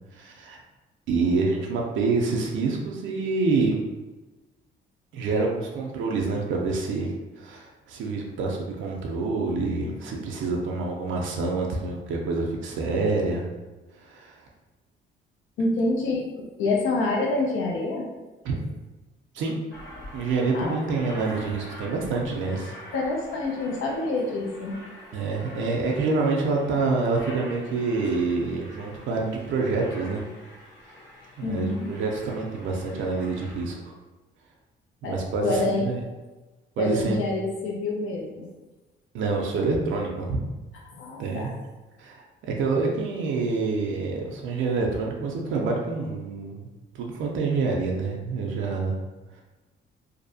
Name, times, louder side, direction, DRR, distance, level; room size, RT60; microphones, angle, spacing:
voice 1, 0.1-0.6 1.1-3.8 5.1-13.4 13.9-14.5 18.4-18.6 19.3-19.6 20.1-22.7 25.1-30.2 30.9-31.0 31.4-33.9 35.0-36.0 36.8-37.2 39.1-40.4 41.2-41.5 42.0-46.7 46.9-49.0 49.3-49.4, right 3 dB, 80° right, -1 dB, 0.4 m, -27 dB
voice 2, 15.6-18.1 20.5-20.8 22.9-24.8 31.4-31.9 35.0-35.2 35.4-35.9 36.8-38.5 40.9-41.5, left 2 dB, 85° left, -1 dB, 0.5 m, -27 dB
Aircraft, 19.7-33.6, left 1 dB, 70° left, 0.9 m, -45 dB
2.6 x 2.0 x 2.6 m, 1.2 s
cardioid pair, 90°, 20 cm